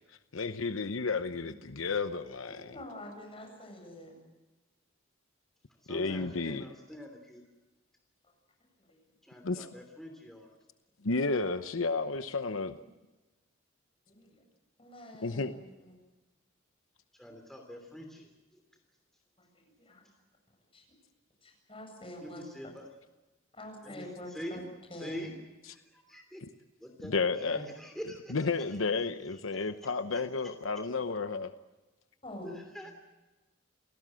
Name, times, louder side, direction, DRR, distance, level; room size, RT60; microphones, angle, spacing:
voice 1, 0.3-2.7 5.9-6.7 9.4-9.7 11.0-12.7 15.2-15.5 27.0-27.6 28.3-31.5, left 4 dB, 75° left, 10 dB, 0.9 m, -32 dB
voice 2, 2.6-4.2 8.8-9.0 14.1-14.4 14.8-15.9 19.4-20.0 20.7-20.8 21.4-22.4 23.5-24.6 24.9-25.3 27.5-27.7 31.0-31.1 32.2-32.6, left 1 dB, 25° left, 2 dB, 7.9 m, -46 dB
voice 3, 5.8-7.4 9.2-10.5 17.1-18.3 22.2-22.9 23.8-24.6 25.0-25.3 25.7-26.4 26.8-28.5 29.6-29.7 30.1-30.2 32.4-32.9, equal, ahead, 3 dB, 3.1 m, -45 dB
28.5 x 18.0 x 7.7 m, 1.1 s
head